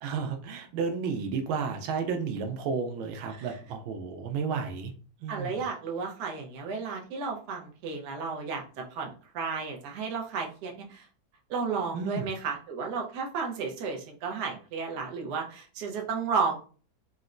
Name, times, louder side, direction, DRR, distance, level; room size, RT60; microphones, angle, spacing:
voice 1, 0.0-4.9 5.2-5.6 11.9-12.3, right 5 dB, 90° right, 5 dB, 1.4 m, -32 dB
voice 2, 5.3-8.6 8.9-11.1 11.5-16.6, right 5 dB, 65° right, 1 dB, 1.1 m, -33 dB
4.0 x 2.1 x 2.4 m, 0.39 s
omnidirectional pair, 2.2 m